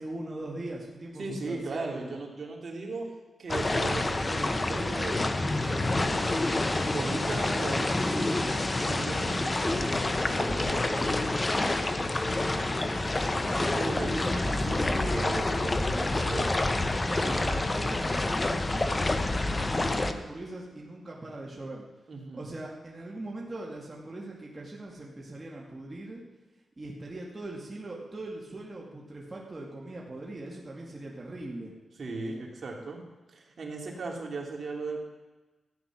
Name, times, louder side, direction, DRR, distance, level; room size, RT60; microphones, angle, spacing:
voice 1, 0.0-2.1 17.0-21.8 22.3-26.2 26.8-31.7, right 2 dB, 25° right, -3 dB, 2.1 m, -41 dB
voice 2, 1.2-3.1 3.4-5.2 5.6-6.2 6.9-11.0 13.6-16.5 17.3-17.4 22.1-22.4 32.0-33.0 33.3-35.0, right 3 dB, 55° right, 0 dB, 2.9 m, -37 dB
sound 1, 3.5-20.1, left 2 dB, 25° left, 0.9 m, -28 dB
14.0 x 9.6 x 6.0 m, 1.2 s
cardioid pair, 90°, 0 cm